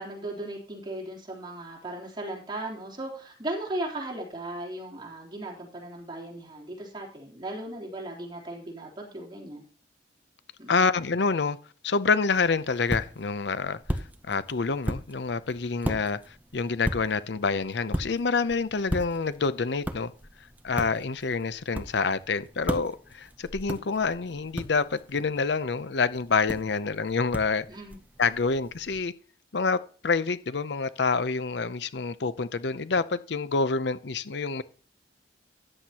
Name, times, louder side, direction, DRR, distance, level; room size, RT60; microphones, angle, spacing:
voice 1, 0.0-9.6 10.6-10.9 27.7-28.0, right 1 dB, 25° right, 3.4 m, -37 dB
voice 2, 10.7-11.6 11.8-20.1 20.6-27.7 28.2-29.1 29.5-34.6, left 4 dB, 70° left, 0.6 m, -27 dB
sound 1, 12.3-29.0, equal, 10° right, 0.7 m, -38 dB
13.5 x 10.0 x 2.9 m
head